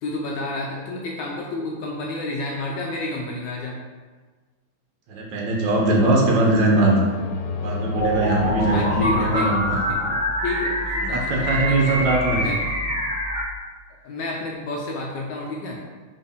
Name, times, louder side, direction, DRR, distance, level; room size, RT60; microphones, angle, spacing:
voice 1, 0.0-3.8 8.7-9.5 9.8-10.0 10.4-12.0 12.4-12.6 14.0-15.8, left 2 dB, 70° left, -2 dB, 1.1 m, -30 dB
voice 2, 5.1-7.1 7.6-9.8 10.1-10.2 11.0-12.5, right 2 dB, 70° right, -1 dB, 1.3 m, -21 dB
sound 1, 5.7-10.5, left 4 dB, 90° left, 1.5 m, -32 dB
sound 2, 7.9-13.4, equal, 10° right, 0.4 m, -25 dB
4.2 x 3.6 x 3.4 m, 1.4 s
omnidirectional pair, 2.3 m